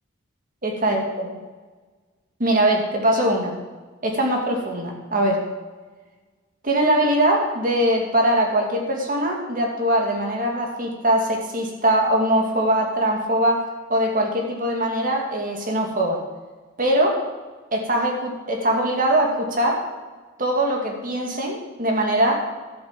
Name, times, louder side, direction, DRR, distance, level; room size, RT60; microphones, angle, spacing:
voice 1, 0.6-1.3 2.4-3.6 4.0-5.4 6.6-13.6 13.9-16.2 16.8-17.2 17.7-19.8 20.4-22.4, right 1 dB, 40° right, 1 dB, 2.3 m, -21 dB
12.5 x 7.9 x 7.4 m, 1.3 s
head